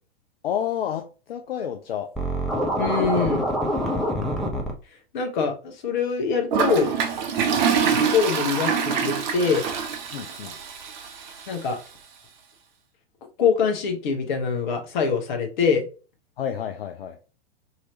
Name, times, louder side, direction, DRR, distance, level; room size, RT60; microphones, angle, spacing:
voice 1, 0.4-2.1 10.1-10.5 16.4-17.2, left 9 dB, 70° left, 0.5 m, -30 dB
Scratching (performance technique), 2.1-4.7, equal, ahead, 0.6 m, -25 dB
voice 2, 2.8-3.5 5.1-6.9 8.0-9.7 11.5-11.8 13.4-15.9, left 5 dB, 50° left, 1.0 m, -24 dB
Toilet flush, 6.5-11.6, right 6 dB, 50° right, 0.7 m, -25 dB
2.9 x 2.8 x 2.8 m
figure-of-eight pair, 100°, 30 cm